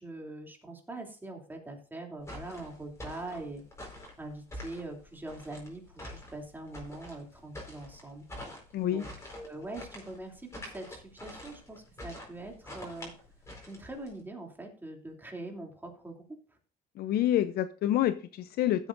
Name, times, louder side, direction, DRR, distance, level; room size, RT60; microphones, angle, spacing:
voice 1, 0.0-3.6 4.2-8.2 8.9-9.1 9.3-13.1 13.7-16.1, right 2 dB, 10° right, 1 dB, 2.8 m, -43 dB
sound 1, 2.2-14.2, left 1 dB, 15° left, 4.4 m, -46 dB
voice 2, 8.7-9.0 17.0-18.9, left 12 dB, 65° left, 11 dB, 0.6 m, -28 dB
16.0 x 8.2 x 2.5 m, 0.38 s
cardioid pair, 110°, 17 cm